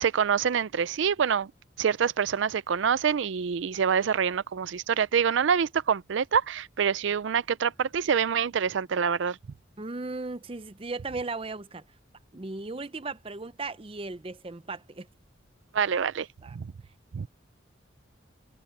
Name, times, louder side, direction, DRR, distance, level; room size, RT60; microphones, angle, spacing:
voice 1, 0.0-1.5 1.8-9.4 15.7-16.3 16.6-16.7 17.1-17.3, right 7 dB, 75° right, 0.4 m, -26 dB
voice 2, 9.8-11.8 12.3-15.1 16.4-16.6, right 3 dB, 30° right, 0.6 m, -36 dB
head